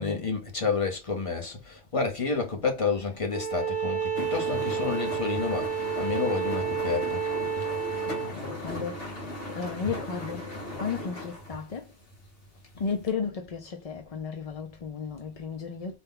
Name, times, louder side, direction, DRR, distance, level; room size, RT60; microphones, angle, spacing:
voice 1, 0.0-7.2, left 4 dB, 30° left, 0.9 m, -30 dB
Bowed string instrument, 3.3-8.3, right 7 dB, 55° right, 0.9 m, -30 dB
sound 1, 4.1-11.8 12.1-12.6 13.1-13.2, left 1 dB, 70° left, 2.1 m, -37 dB
voice 2, 8.1-10.5 10.8-11.9 12.7-16.0, left 5 dB, 50° left, 0.4 m, -34 dB
4.1 x 2.2 x 3.7 m
omnidirectional pair, 1.2 m